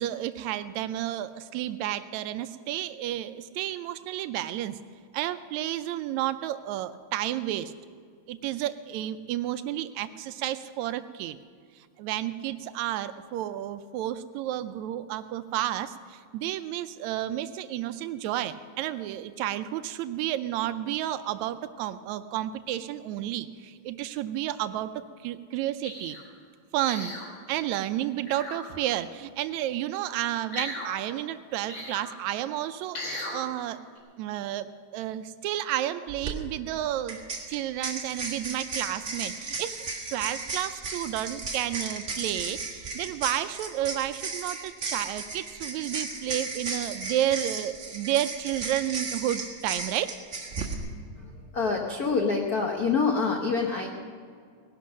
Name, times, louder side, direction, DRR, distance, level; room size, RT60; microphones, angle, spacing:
voice 1, 0.0-4.8 5.1-7.7 8.3-11.4 11.8-24.9 25.2-26.2 26.7-27.1 27.5-33.8 34.2-37.2 37.5-39.7 40.1-50.1, right 12 dB, 80° right, 12 dB, 1.8 m, -31 dB
sound 1, 25.8-26.2 26.9-27.3 28.2-28.6 30.5-30.9 31.7-32.0 32.9-33.4 34.0-34.1, left 1 dB, 40° left, 3.6 m, -36 dB
sound 2, 36.1-36.3 37.1-50.7, right 4 dB, 35° right, 1.5 m, -35 dB
voice 2, 51.2-53.9, left 4 dB, 70° left, 1 dB, 0.9 m, -26 dB
18.0 x 11.5 x 6.3 m, 2.1 s
omnidirectional pair, 3.4 m